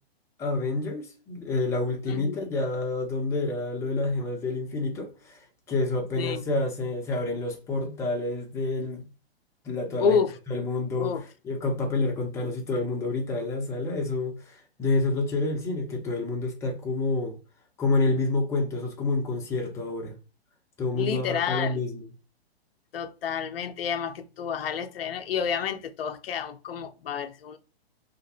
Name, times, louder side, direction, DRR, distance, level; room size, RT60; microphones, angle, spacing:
voice 1, 0.4-9.0 9.6-11.1 11.4-17.4 17.8-20.2 20.8-22.1, left 3 dB, 10° left, 0.4 m, -28 dB
voice 2, 2.1-2.4 6.2-6.4 10.0-10.3 11.0-11.2 20.9-21.8 22.9-27.6, left 7 dB, 65° left, 0.5 m, -29 dB
2.8 x 2.5 x 2.7 m
figure-of-eight pair, 120°, 31 cm